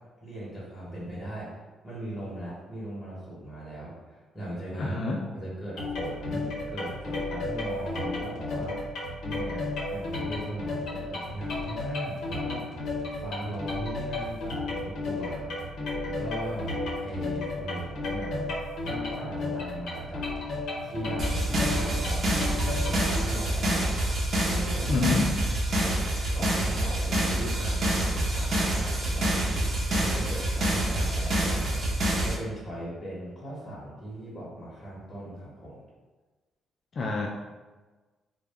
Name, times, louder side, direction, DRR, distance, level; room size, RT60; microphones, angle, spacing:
voice 1, 0.2-1.6 1.8-5.0 5.3-8.9 9.2-15.5 16.0-16.7 17.0-18.5 18.8-20.3 20.8-22.2 22.6-25.1 25.7-25.9 26.3-35.8, right 1 dB, 20° left, -8 dB, 1.0 m, -38 dB
voice 2, 4.8-5.2 24.9-25.3 36.9-37.3, left 3 dB, 45° left, 0 dB, 0.3 m, -27 dB
sound 1, 5.8-23.2, left 2 dB, 75° left, 0.6 m, -33 dB
sound 2, 21.2-32.3, right 1 dB, 55° right, 0.7 m, -27 dB
2.3 x 2.1 x 3.4 m, 1.3 s
cardioid pair, 90°, 0 cm